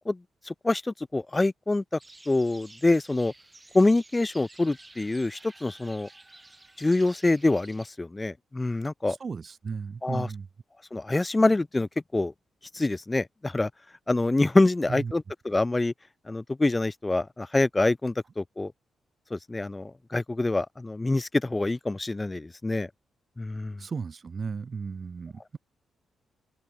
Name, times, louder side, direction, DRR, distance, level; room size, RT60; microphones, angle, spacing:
voice 1, 0.5-1.8 2.3-3.3 3.7-6.1 6.8-9.2 10.0-10.3 10.9-12.3 12.7-13.7 14.1-15.9 16.3-18.7 19.3-22.9 23.4-23.8, left 2 dB, 15° left, 1.1 m, -25 dB
sound 1, 2.0-7.9, right 2 dB, 15° right, 7.0 m, -52 dB
voice 2, 9.1-10.5 14.9-15.1 23.8-25.6, right 5 dB, 35° right, 1.0 m, -35 dB
wide cardioid pair, 155°, 0 cm